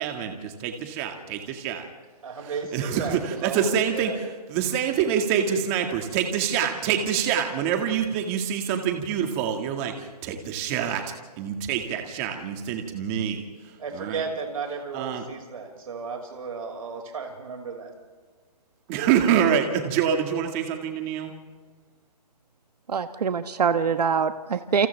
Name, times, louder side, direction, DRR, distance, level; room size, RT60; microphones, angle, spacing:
voice 1, 0.0-1.9 2.4-11.0 11.4-14.2 14.9-15.2 18.9-21.3, right 8 dB, 20° right, 4 dB, 2.0 m, -26 dB
voice 2, 2.2-4.2 13.8-17.9, right 5 dB, 60° right, 2 dB, 5.8 m, -34 dB
voice 3, 22.9-24.9, right 6 dB, 75° right, 9 dB, 1.2 m, -24 dB
29.0 x 29.0 x 3.5 m, 1.4 s
hypercardioid pair, 165°, 21 cm